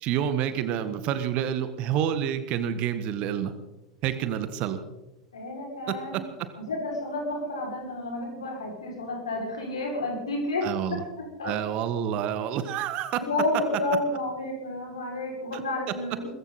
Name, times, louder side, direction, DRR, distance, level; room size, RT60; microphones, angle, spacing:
voice 1, 0.0-3.5 4.0-4.8 5.9-6.5 10.6-11.0 11.4-13.2 15.5-15.6 15.9-16.0, right 9 dB, 40° right, 11 dB, 1.5 m, -28 dB
voice 2, 5.3-6.2 6.6-10.7 11.4-11.5 13.1-16.3, left 2 dB, 70° left, -1 dB, 6.1 m, -30 dB
21.0 x 15.0 x 4.2 m, 0.98 s
figure-of-eight pair, 85°, 3 cm